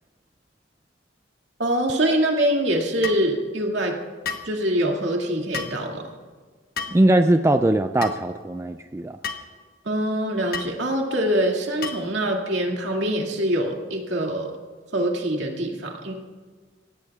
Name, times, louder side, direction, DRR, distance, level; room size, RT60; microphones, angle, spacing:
voice 1, 1.6-3.9 4.4-6.1 9.8-14.5 14.9-16.1, right 1 dB, 65° right, 0 dB, 2.3 m, -24 dB
sound 1, 3.0-3.3 4.2-4.5 5.5-5.8 6.8-7.0 8.0-8.2 9.2-9.5 10.5-10.7 11.8-12.1, left 5 dB, 50° left, 1.2 m, -31 dB
voice 2, 6.9-9.2, right 1 dB, 15° right, 8 dB, 0.3 m, -20 dB
25.0 x 17.5 x 2.4 m, 1.4 s
head